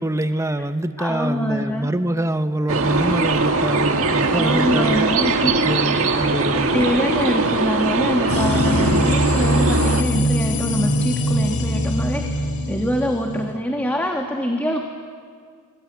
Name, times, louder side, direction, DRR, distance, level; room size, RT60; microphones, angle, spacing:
voice 1, 0.0-5.1 5.4-6.9, right 1 dB, 15° right, 10 dB, 0.8 m, -25 dB
voice 2, 1.0-1.9 4.3-6.1 6.5-14.8, equal, 10° left, 2 dB, 1.6 m, -25 dB
sound 1, 2.7-10.0, right 3 dB, 65° right, 1.9 m, -21 dB
sound 2, 8.3-13.5, equal, 90° left, 3.0 m, -22 dB
27.0 x 20.0 x 9.6 m, 2.1 s
head